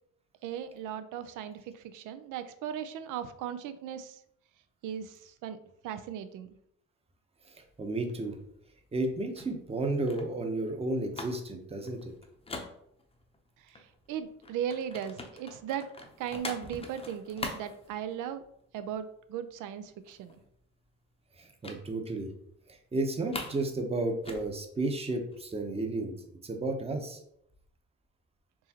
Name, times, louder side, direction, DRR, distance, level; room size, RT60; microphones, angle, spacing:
voice 1, 0.4-4.2 4.8-5.6 5.8-6.6 13.6-15.9 16.2-18.4 18.7-20.4, right 9 dB, 85° right, 11 dB, 0.5 m, -37 dB
voice 2, 7.5-8.4 8.9-12.1 21.4-22.3 22.7-26.1 26.4-27.2, right 2 dB, 20° right, 4 dB, 0.7 m, -32 dB
sound 1, 7.6-13.4 13.7-18.6 18.9-19.2 19.5-19.6 19.9-20.6 21.6-21.8 22.2-22.3 22.7-23.7 23.9-25.7, left 2 dB, 20° left, 0.7 m, -44 dB
4.5 x 3.1 x 2.8 m, 0.71 s
cardioid pair, 90°, 30 cm